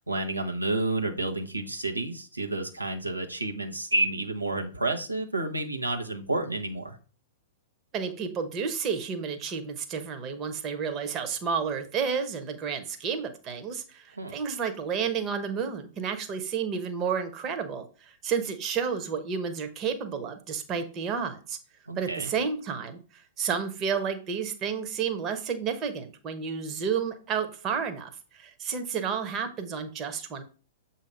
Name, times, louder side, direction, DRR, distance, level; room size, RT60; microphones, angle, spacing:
voice 1, 0.1-7.0 14.2-14.4 21.9-22.3, right 2 dB, 85° right, 3 dB, 1.0 m, -30 dB
voice 2, 7.9-21.6 22.0-30.4, right 6 dB, 30° right, 7 dB, 1.0 m, -31 dB
7.0 x 2.8 x 5.3 m, 0.38 s
figure-of-eight pair, 105°, 0 cm